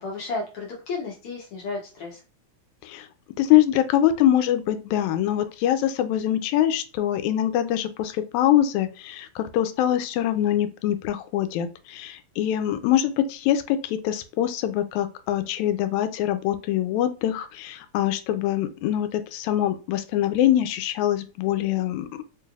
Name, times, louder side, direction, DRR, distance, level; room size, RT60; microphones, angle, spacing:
voice 1, 0.0-2.2, left 3 dB, 65° left, -2 dB, 1.4 m, -33 dB
voice 2, 3.4-22.1, left 12 dB, 80° left, 9 dB, 1.9 m, -24 dB
4.4 x 3.2 x 2.3 m, 0.34 s
omnidirectional pair, 3.4 m